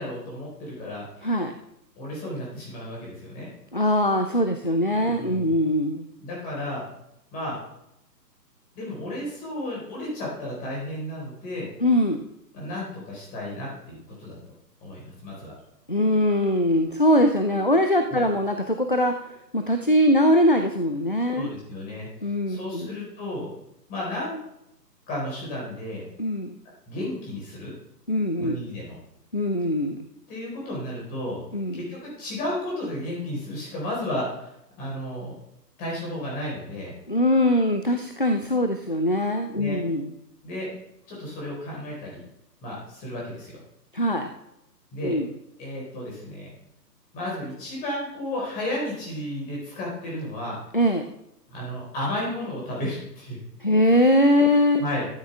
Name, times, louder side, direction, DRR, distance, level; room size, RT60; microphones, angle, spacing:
voice 1, 0.0-1.4 2.0-3.5 5.2-5.6 6.2-6.8 7.3-7.6 8.7-11.7 12.5-14.4 14.8-15.5 18.1-18.2 21.3-22.1 22.5-23.5 23.9-24.4 25.1-26.0 26.9-27.7 28.4-29.0 30.3-31.4 31.7-35.3 35.8-36.9 39.6-39.8 40.4-40.7 41.1-42.2 42.6-43.6 44.9-45.2 45.6-46.5 47.1-50.6 51.5-53.4 54.5-55.1, left 1 dB, 15° left, -3 dB, 4.3 m, -33 dB
voice 2, 1.2-1.5 3.7-6.1 11.8-12.2 15.9-19.1 19.5-21.5 22.2-22.9 26.2-26.5 28.1-28.6 29.3-30.0 31.5-31.8 37.1-40.1 43.9-44.3 45.0-45.3 50.7-51.0 53.6-54.8, left 1 dB, 35° left, 7 dB, 0.4 m, -22 dB
13.0 x 8.5 x 3.4 m, 0.83 s
figure-of-eight pair, 145°, 50 cm